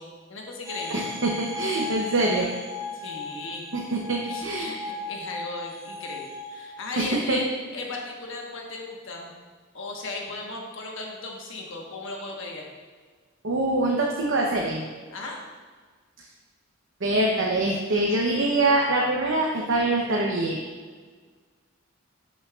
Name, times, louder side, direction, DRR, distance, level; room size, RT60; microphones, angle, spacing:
voice 1, 0.0-1.1 2.9-3.7 4.2-7.5 7.7-9.3 9.7-12.7 15.1-15.4, left 2 dB, 65° left, 0 dB, 1.3 m, -37 dB
sound 1, 0.6-6.7, left 3 dB, 10° right, 0.8 m, -36 dB
voice 2, 0.9-2.5 3.9-4.8 7.0-7.4 13.4-14.8 17.0-20.6, right 2 dB, 65° right, -2 dB, 0.8 m, -24 dB
11.0 x 6.3 x 2.4 m, 1.5 s
head